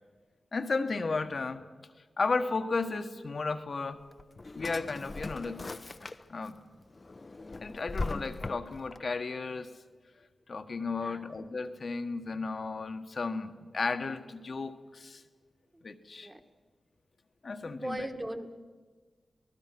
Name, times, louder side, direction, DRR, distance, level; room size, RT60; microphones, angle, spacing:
voice 1, 0.5-1.6 2.2-4.0 4.5-5.6 6.3-6.6 7.6-9.8 10.5-15.2 15.8-16.3 17.4-18.1, left 4 dB, 60° left, 1.4 m, -34 dB
Drawer open or close, 3.9-6.5 6.9-9.0, left 3 dB, 40° left, 0.8 m, -39 dB
voice 2, 17.6-18.6, right 1 dB, 15° right, 2.0 m, -39 dB
27.0 x 19.5 x 6.1 m
cardioid pair, 55°, 0 cm